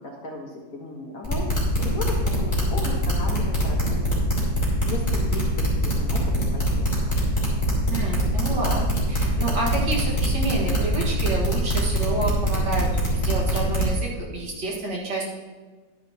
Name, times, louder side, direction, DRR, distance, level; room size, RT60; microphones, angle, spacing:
voice 1, 0.0-1.5 1.8-4.1 4.8-7.1, left 2 dB, 50° left, -1 dB, 1.7 m, -36 dB
sound 1, 1.2-13.9, equal, 15° left, 2.8 m, -23 dB
voice 2, 7.9-15.3, right 2 dB, 65° right, -4 dB, 2.4 m, -29 dB
11.5 x 9.6 x 2.9 m, 1.3 s
omnidirectional pair, 2.1 m